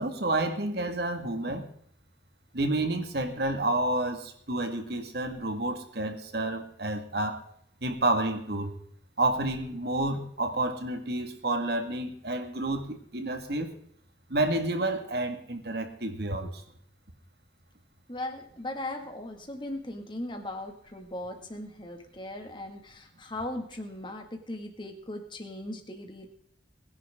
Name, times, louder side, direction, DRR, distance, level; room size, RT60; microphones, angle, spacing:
voice 1, 0.0-1.7 2.5-7.4 7.8-8.7 9.2-13.8 14.3-16.6, right 2 dB, 60° right, 6 dB, 1.9 m, -30 dB
voice 2, 18.1-26.3, left 1 dB, 25° left, 4 dB, 2.1 m, -38 dB
21.5 x 10.5 x 3.7 m, 0.64 s
head